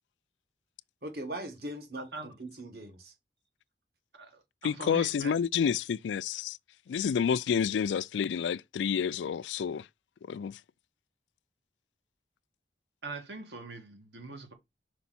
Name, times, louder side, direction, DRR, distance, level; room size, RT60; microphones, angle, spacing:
voice 1, 1.0-3.1, right 1 dB, 55° right, 1.7 m, -40 dB
voice 2, 4.1-5.4 13.0-14.5, right 3 dB, 80° right, 2.0 m, -42 dB
voice 3, 4.6-6.6 6.9-9.9 10.3-10.6, left 7 dB, 90° left, 0.3 m, -29 dB
5.7 x 5.0 x 4.2 m
head